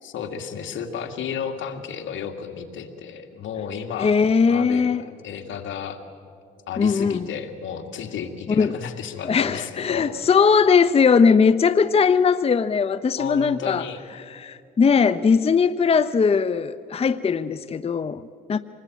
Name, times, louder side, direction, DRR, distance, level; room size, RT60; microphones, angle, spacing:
voice 1, 0.0-4.2 4.5-6.0 6.7-10.1 13.2-14.0, left 7 dB, 75° left, 2.3 m, -33 dB
voice 2, 4.0-5.0 6.8-7.3 8.5-8.7 9.2-13.9 14.3-18.6, left 5 dB, 30° left, 0.6 m, -19 dB
26.5 x 20.0 x 9.2 m
cardioid pair, 90°, 20 cm